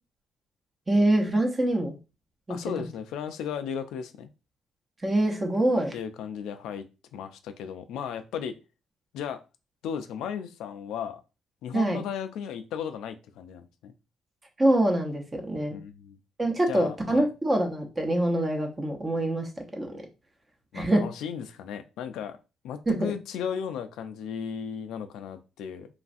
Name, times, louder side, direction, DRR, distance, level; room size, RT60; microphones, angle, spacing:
voice 1, 0.9-2.0 5.0-5.9 11.7-12.0 14.6-15.8 16.4-19.5 19.8-19.9 20.7-21.0 22.9-23.0, right 1 dB, 25° right, 2 dB, 0.8 m, -24 dB
voice 2, 2.5-4.3 5.9-6.9 7.1-8.5 9.1-9.4 9.8-11.2 11.6-13.9 15.7-16.2 16.7-17.3 20.7-22.4 22.6-25.9, left 7 dB, 85° left, 9 dB, 0.3 m, -35 dB
3.1 x 2.4 x 2.5 m, 0.30 s
cardioid pair, 90°, 0 cm